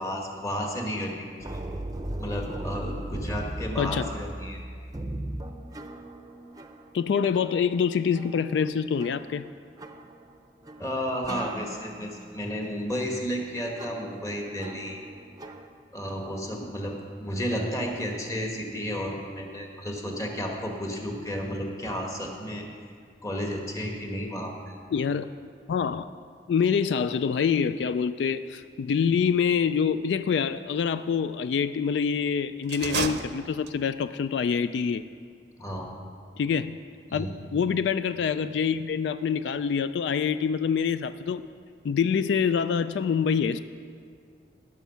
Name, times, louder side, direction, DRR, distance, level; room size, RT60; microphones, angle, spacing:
voice 1, 0.0-1.6 2.2-4.6 10.8-15.0 15.9-22.6 23.2-24.8 35.6-35.9 37.1-37.4, equal, 20° left, 1 dB, 1.3 m, -32 dB
sound 1, 1.4-15.7, right 1 dB, 20° right, 0.6 m, -39 dB
voice 2, 3.8-4.1 6.9-9.4 24.9-25.3 25.7-26.1 26.5-35.0 36.4-36.8 37.1-41.5 41.8-43.6, left 6 dB, 80° left, 13 dB, 0.3 m, -26 dB
sound 2, 32.6-34.0, right 5 dB, 75° right, 0.6 m, -32 dB
15.0 x 6.3 x 5.7 m, 2.2 s
head